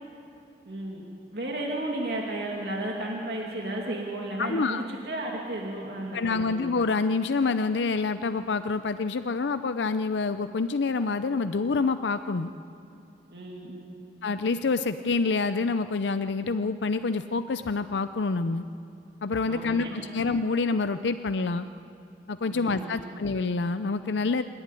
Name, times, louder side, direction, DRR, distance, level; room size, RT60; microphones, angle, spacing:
voice 1, 0.7-1.0 1.3-6.6 13.3-14.0 19.5-20.2 22.5-23.2, right 1 dB, 65° right, -2 dB, 2.4 m, -34 dB
voice 2, 4.4-4.8 6.1-12.5 14.2-18.7 19.2-21.7 22.3-24.4, left 4 dB, 85° left, 10 dB, 0.6 m, -27 dB
26.5 x 11.5 x 9.9 m, 2.7 s
head